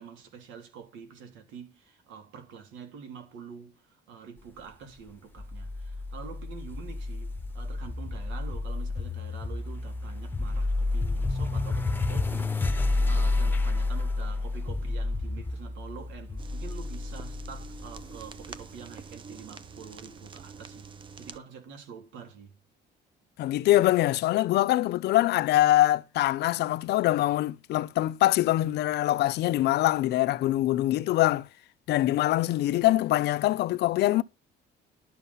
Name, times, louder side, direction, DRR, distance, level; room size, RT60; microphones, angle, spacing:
voice 1, 0.0-22.6, right 6 dB, 90° right, 3.4 m, -46 dB
sound 1, 5.4-18.6, left 2 dB, 10° left, 0.8 m, -30 dB
sound 2, 16.4-21.4, right 5 dB, 25° right, 0.7 m, -46 dB
voice 2, 23.4-31.5 31.9-34.2, left 15 dB, 60° left, 0.6 m, -24 dB
12.0 x 7.4 x 5.5 m
cardioid pair, 175°, 19 cm